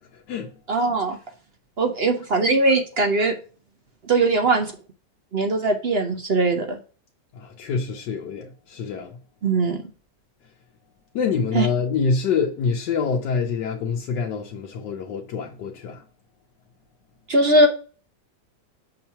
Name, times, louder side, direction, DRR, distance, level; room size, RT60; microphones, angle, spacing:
voice 1, 0.1-0.5 7.3-9.2 11.1-16.0, left 5 dB, 80° left, 1.3 m, -26 dB
voice 2, 0.7-1.2 1.8-3.4 4.1-4.7 5.3-6.8 9.4-9.8 11.5-11.7 17.3-17.7, right 2 dB, 60° right, 0.6 m, -20 dB
6.4 x 2.9 x 5.4 m
omnidirectional pair, 1.8 m